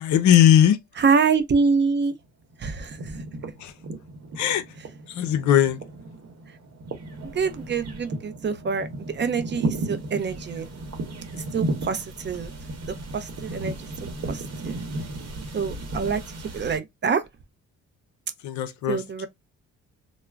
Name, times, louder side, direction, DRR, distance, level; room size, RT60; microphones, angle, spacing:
voice 1, 0.0-0.8 3.6-3.7 4.4-4.6 5.2-5.8 18.4-19.0, left 10 dB, 70° left, 0.5 m, -18 dB
voice 2, 0.9-2.1 2.6-3.2 4.8-4.9 7.2-10.7 11.3-12.5 12.9-13.9 14.3-14.8 15.5-17.3 18.9-19.3, right 5 dB, 35° right, 0.6 m, -26 dB
sound 1, 1.6-2.3 2.5-16.8, right 2 dB, 55° right, 1.0 m, -34 dB
2.3 x 2.1 x 3.2 m
cardioid pair, 90°, 30 cm